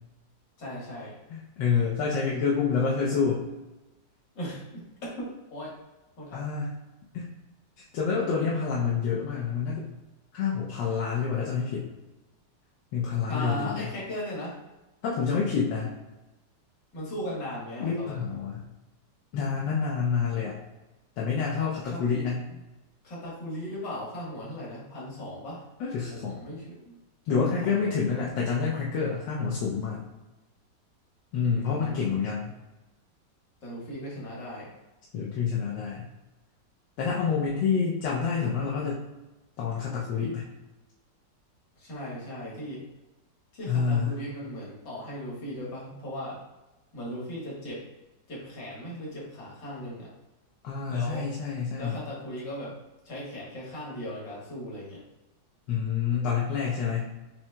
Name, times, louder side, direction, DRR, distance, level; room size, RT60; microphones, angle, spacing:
voice 1, 0.6-1.2 4.3-4.8 5.2-5.8 6.2-6.5 13.3-14.6 16.9-18.2 21.8-22.0 22.5-22.6 23.0-25.6 26.1-27.0 27.3-28.0 31.4-32.2 33.6-34.7 41.8-42.8 43.5-46.4 46.9-47.8 48.3-50.1 50.9-51.3 51.8-55.0, equal, 70° left, -5 dB, 2.1 m, -38 dB
voice 2, 1.3-3.4 6.3-6.7 7.1-7.3 7.9-9.9 10.3-11.9 12.9-13.9 15.0-15.9 17.8-18.7 19.3-20.6 21.2-22.4 25.8-26.4 27.3-30.0 31.3-32.5 35.1-36.1 37.0-39.0 39.6-40.4 43.7-44.2 50.6-52.0 55.7-57.1, left 6 dB, 90° left, -5 dB, 1.4 m, -28 dB
7.1 x 2.8 x 2.2 m, 1.1 s
omnidirectional pair, 2.0 m